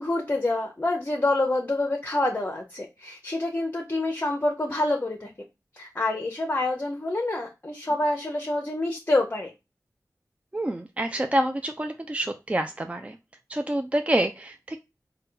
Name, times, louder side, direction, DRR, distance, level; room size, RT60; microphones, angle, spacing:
voice 1, 0.0-5.3 5.7-9.5, left 2 dB, 30° left, 2 dB, 0.7 m, -27 dB
voice 2, 10.5-13.2 13.5-14.8, right 1 dB, 20° right, 7 dB, 0.3 m, -27 dB
3.8 x 2.2 x 3.7 m, 0.25 s
wide cardioid pair, 60°, 6 cm